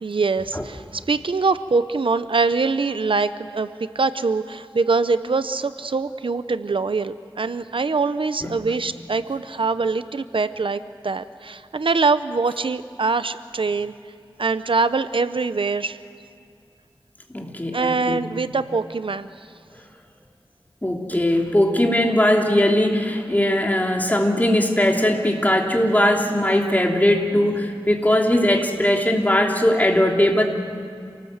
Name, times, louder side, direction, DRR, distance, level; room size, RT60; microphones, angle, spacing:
voice 1, 0.0-13.9 14.4-16.0 17.7-19.3, right 4 dB, 65° right, 12 dB, 0.7 m, -23 dB
voice 2, 17.3-18.2 20.8-30.4, left 1 dB, 20° left, 1 dB, 2.9 m, -19 dB
27.5 x 19.0 x 8.0 m, 2.3 s
wide cardioid pair, 70°, 9 cm